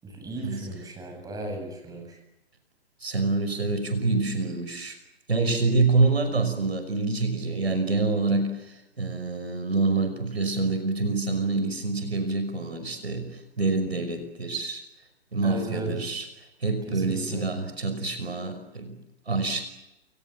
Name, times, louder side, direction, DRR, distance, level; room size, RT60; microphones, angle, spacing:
voice 1, 0.0-2.2 15.4-15.9 16.9-17.4, right 2 dB, 10° right, 4 dB, 7.8 m, -36 dB
voice 2, 3.0-5.0 5.3-14.8 15.3-16.3 16.6-19.0 19.3-19.6, right 3 dB, 80° right, 9 dB, 5.8 m, -26 dB
30.0 x 24.5 x 7.4 m, 0.94 s
figure-of-eight pair, 125°, 31 cm